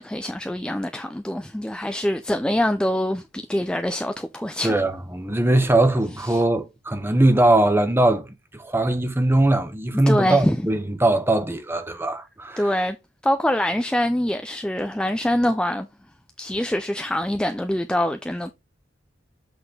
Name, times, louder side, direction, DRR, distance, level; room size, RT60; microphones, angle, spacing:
voice 1, 0.0-4.8 6.3-6.4 10.1-10.6 12.6-13.0 13.2-15.9 16.4-18.5, left 1 dB, 5° left, 0.3 m, -24 dB
voice 2, 4.6-12.7, right 1 dB, 10° right, 0.9 m, -21 dB
7.8 x 4.2 x 3.3 m
head